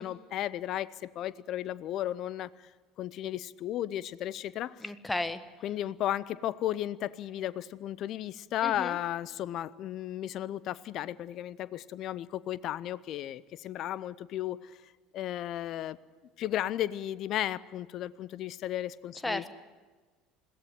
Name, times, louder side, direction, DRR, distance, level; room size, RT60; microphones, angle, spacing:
voice 1, 0.0-2.7 3.0-4.8 5.6-14.8 15.1-16.0 16.4-19.5, left 12 dB, 50° left, 20 dB, 0.6 m, -34 dB
voice 2, 4.8-5.4 8.6-9.0 19.2-19.5, left 2 dB, 10° left, 12 dB, 1.4 m, -33 dB
22.0 x 16.5 x 9.3 m, 1.3 s
figure-of-eight pair, 65°, 0 cm